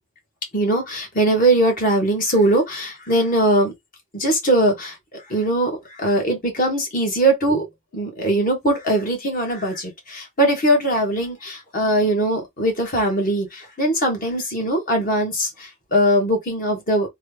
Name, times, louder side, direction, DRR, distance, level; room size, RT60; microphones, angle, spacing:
voice 1, 0.5-3.7 4.1-5.0 5.3-7.7 7.9-17.1, right 1 dB, 40° left, 1.3 m, -20 dB
3.1 x 2.3 x 3.3 m
head